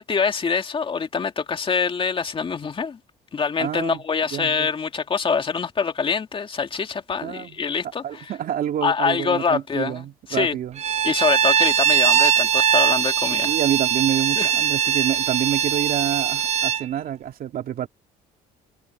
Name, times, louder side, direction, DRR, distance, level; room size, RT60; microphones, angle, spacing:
voice 1, 0.0-3.0 3.3-8.3 8.8-10.0 10.3-10.6 11.0-13.6 14.4-14.5, left 5 dB, 30° left, 2.2 m, -25 dB
voice 2, 3.6-4.0 4.3-4.7 7.2-7.6 8.0-10.8 13.4-17.9, right 10 dB, 60° right, 2.5 m, -27 dB
Bowed string instrument, 10.8-16.8, right 8 dB, 40° right, 0.8 m, -21 dB
cardioid pair, 110°, 17 cm